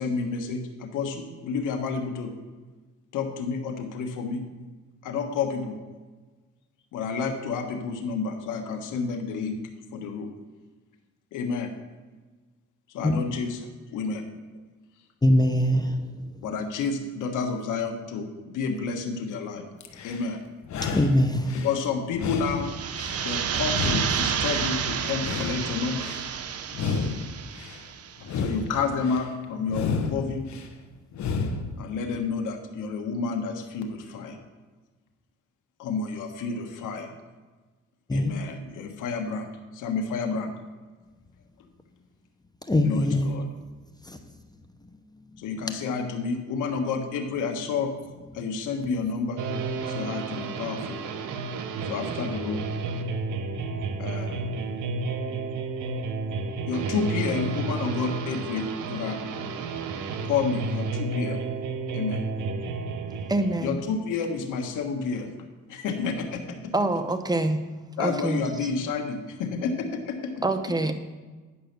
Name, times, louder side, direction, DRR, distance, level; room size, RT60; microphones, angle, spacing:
voice 1, 0.0-2.3 3.1-4.4 5.0-5.8 6.9-9.6 9.9-10.3 11.3-11.7 12.9-13.6 13.9-14.2 16.4-19.6 20.0-20.4 21.5-22.7 23.2-26.1 28.3-30.5 31.8-34.4 35.8-37.1 38.1-40.5 42.8-43.4 45.4-47.9 48.3-49.4 49.8-51.0 51.8-52.6 54.0-54.4 56.7-59.2 60.2-61.4 61.9-62.2 63.6-65.3 65.7-66.7 68.0-70.3, left 5 dB, 90° left, 1.4 m, -30 dB
voice 2, 15.2-16.2 20.9-21.7 38.1-38.3 42.7-43.3 44.0-44.2 45.2-45.7 48.4-48.6, left 1 dB, 15° left, 0.8 m, -23 dB
sound 1, 19.8-20.3 20.6-21.8 22.1-23.3 23.6-24.8 25.1-26.3 26.7-27.8 28.2-29.3 29.7-30.7 31.1-31.8, left 4 dB, 65° left, 1.2 m, -31 dB
sound 2, 22.5-28.2, right 8 dB, 55° right, 0.8 m, -30 dB
sound 3, 49.4-63.8, right 4 dB, 80° right, 1.0 m, -31 dB
voice 3, 63.3-63.8 66.7-67.6 68.0-68.7 70.4-70.9, right 2 dB, 15° right, 0.9 m, -26 dB
10.0 x 5.7 x 6.7 m
cardioid pair, 90°, 30 cm